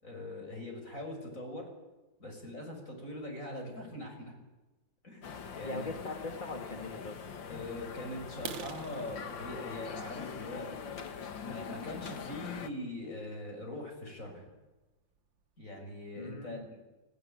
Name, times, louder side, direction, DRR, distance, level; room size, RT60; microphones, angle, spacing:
voice 1, 0.0-1.7 2.2-4.3 5.0-5.9 7.5-10.7 11.4-14.4 15.6-16.8, left 1 dB, 45° left, 2 dB, 6.9 m, -42 dB
sound 1, 5.2-12.7, left 6 dB, 85° left, 2.3 m, -43 dB
voice 2, 5.6-7.2 16.1-16.7, left 3 dB, 25° left, 4 dB, 2.3 m, -41 dB
sound 2, 8.3-12.1 12.6-12.8 13.3-13.4 13.8-14.0 14.3-14.4 14.8-14.9 15.2-15.7, right 8 dB, 90° right, 1.9 m, -47 dB
30.0 x 18.0 x 9.1 m, 1.1 s
omnidirectional pair, 2.0 m